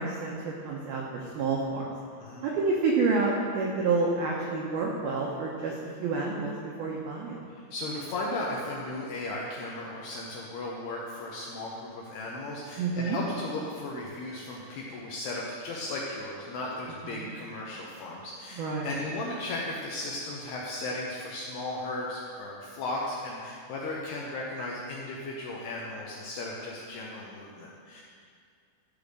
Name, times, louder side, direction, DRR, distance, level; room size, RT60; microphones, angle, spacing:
voice 1, 0.0-1.9 2.4-5.7 6.0-7.4 12.8-13.2 17.0-17.3 18.6-18.9, right 4 dB, 90° right, -2 dB, 2.1 m, -29 dB
voice 2, 7.5-28.0, left 2 dB, 75° left, -3 dB, 2.4 m, -36 dB
13.5 x 5.1 x 6.6 m, 2.2 s
omnidirectional pair, 5.8 m